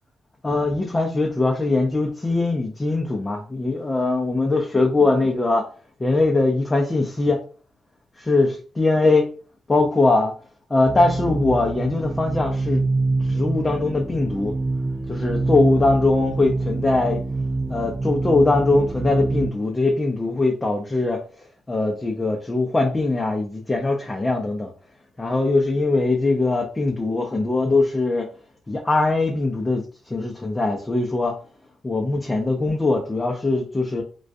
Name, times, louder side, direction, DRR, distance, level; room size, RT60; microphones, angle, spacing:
voice 1, 0.4-5.6 6.0-7.4 8.2-9.3 9.7-10.3 10.7-12.8 13.2-14.5 15.1-17.2 17.7-21.2 21.7-24.7 25.2-28.3 28.7-31.4 31.8-34.0, left 2 dB, 25° left, 1 dB, 0.5 m, -21 dB
sound 1, 10.8-19.5, right 3 dB, 35° right, 0.4 m, -26 dB
2.3 x 2.2 x 2.5 m, 0.39 s
supercardioid pair, 60°, 0 cm